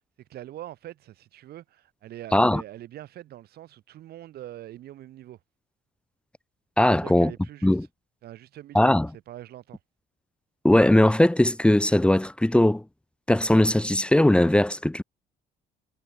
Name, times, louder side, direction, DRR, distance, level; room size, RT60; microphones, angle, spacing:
voice 1, 0.2-5.4 7.0-7.8 8.2-8.9 9.3-9.8, right 13 dB, 70° right, 5.7 m, -43 dB
voice 2, 6.8-7.3 7.6-7.9 8.7-9.1 10.6-12.8 13.3-15.0, left 1 dB, 5° left, 1.8 m, -19 dB
cardioid pair, 110°, 17 cm